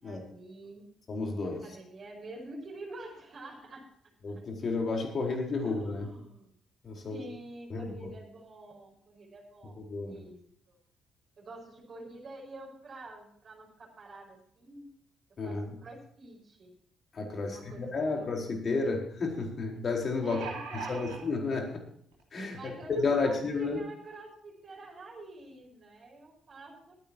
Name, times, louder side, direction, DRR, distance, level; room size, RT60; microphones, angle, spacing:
voice 1, 0.0-0.9 1.6-3.8 5.6-6.5 7.1-9.8 10.1-10.4 10.7-10.8 11.4-14.9 15.4-16.7 17.4-18.3 20.2-21.3 22.5-26.9, right 2 dB, 50° right, -4 dB, 5.5 m, -47 dB
voice 2, 1.1-1.6 4.2-6.1 6.8-7.2 7.7-8.1 9.8-10.2 15.4-15.8 17.1-20.4 20.7-21.8 22.3-22.6 22.9-23.8, left 3 dB, 50° left, 1 dB, 4.6 m, -32 dB
sound 1, 17.9-18.0 18.3-18.4 20.0-21.2 22.1-22.2 22.6-22.7, right 4 dB, 85° right, 3.2 m, -40 dB
23.0 x 10.0 x 3.0 m, 0.66 s
hypercardioid pair, 45°, 0 cm